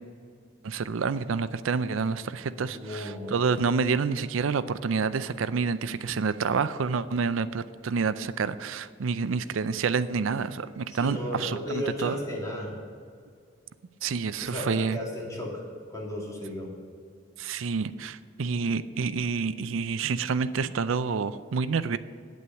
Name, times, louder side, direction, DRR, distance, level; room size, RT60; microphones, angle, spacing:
voice 1, 0.6-12.2 14.0-15.0 17.4-22.0, right 5 dB, 90° right, 13 dB, 0.5 m, -28 dB
voice 2, 2.6-3.3 10.9-12.7 14.4-15.5 15.9-16.7, equal, 20° left, -4 dB, 2.9 m, -34 dB
9.2 x 8.5 x 7.1 m, 2.1 s
head